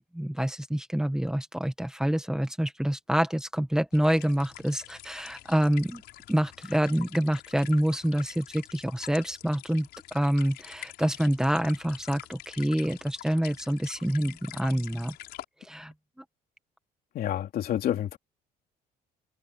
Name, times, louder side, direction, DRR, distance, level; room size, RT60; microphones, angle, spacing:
voice 1, 0.0-6.0 6.3-15.1 15.6-15.9, right 1 dB, 5° right, 1.7 m, -27 dB
sound 1, 3.9-15.4, left 15 dB, 80° left, 5.7 m, -46 dB
voice 2, 17.1-18.2, left 11 dB, 65° left, 3.3 m, -28 dB
cardioid pair, 110°, 17 cm